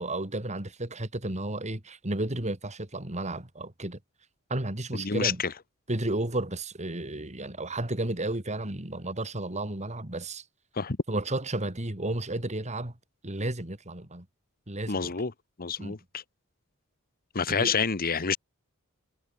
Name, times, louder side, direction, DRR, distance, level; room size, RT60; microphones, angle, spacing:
voice 1, 0.0-4.0 4.5-5.4 5.9-10.4 11.1-12.9 13.2-14.3 14.7-15.1 15.8-16.0 17.5-17.8, right 2 dB, 30° right, 2.8 m, -32 dB
voice 2, 5.0-5.5 10.7-11.0 14.9-15.3 15.6-16.2 17.3-18.4, left 5 dB, 45° left, 1.2 m, -28 dB
head